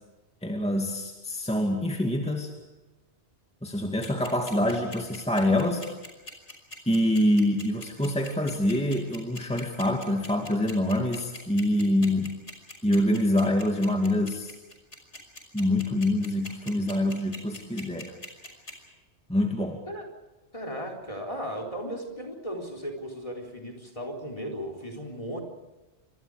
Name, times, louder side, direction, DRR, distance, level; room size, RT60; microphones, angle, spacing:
voice 1, 0.4-2.5 3.6-5.9 6.9-12.3 12.8-14.5 15.5-18.1 19.3-19.8, left 1 dB, 5° left, 2 dB, 2.3 m, -25 dB
sound 1, 4.0-18.7, left 2 dB, 85° left, 5.7 m, -41 dB
voice 2, 20.5-25.4, equal, 30° left, 3 dB, 4.2 m, -36 dB
28.0 x 25.5 x 5.0 m, 1.1 s
omnidirectional pair, 1.2 m